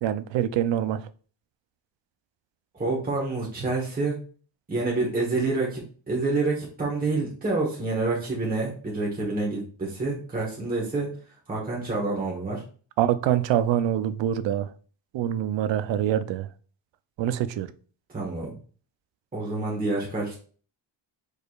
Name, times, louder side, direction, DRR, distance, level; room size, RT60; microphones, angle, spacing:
voice 1, 0.0-1.0 13.0-14.7 15.1-16.5 17.2-17.7, right 11 dB, 70° right, 0.6 m, -25 dB
voice 2, 2.7-4.1 4.7-11.1 11.5-12.6 18.1-18.6 19.3-20.4, right 3 dB, 20° right, 1.2 m, -28 dB
4.9 x 4.4 x 2.4 m
wide cardioid pair, 135°, 45 cm